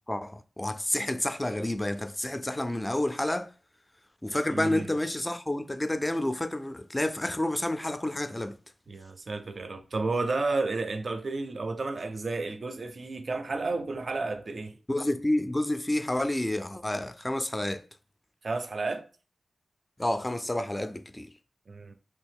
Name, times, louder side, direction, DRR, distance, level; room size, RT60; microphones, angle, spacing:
voice 1, 0.1-3.5 4.2-8.6 14.9-17.8 20.0-21.3, left 1 dB, 20° left, 0.3 m, -29 dB
voice 2, 4.5-4.9 8.9-14.8 18.4-19.0 21.7-21.9, right 3 dB, 60° right, 0.4 m, -32 dB
3.0 x 2.8 x 3.5 m
wide cardioid pair, 80°, 0 cm